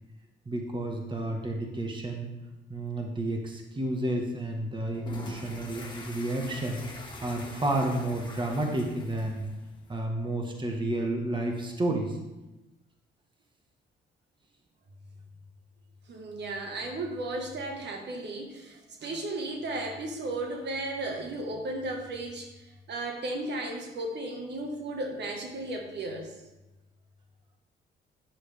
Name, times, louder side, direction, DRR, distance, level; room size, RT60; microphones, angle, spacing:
voice 1, 0.4-2.3 2.7-6.8 7.2-9.5 9.9-12.2, right 1 dB, 25° right, 2 dB, 1.4 m, -31 dB
sound 1, 4.9-10.0, left 2 dB, 25° left, 1.8 m, -44 dB
voice 2, 16.1-26.3, right 2 dB, 60° right, 2 dB, 1.6 m, -35 dB
10.0 x 6.9 x 3.5 m, 1.0 s
cardioid pair, 90°, 20 cm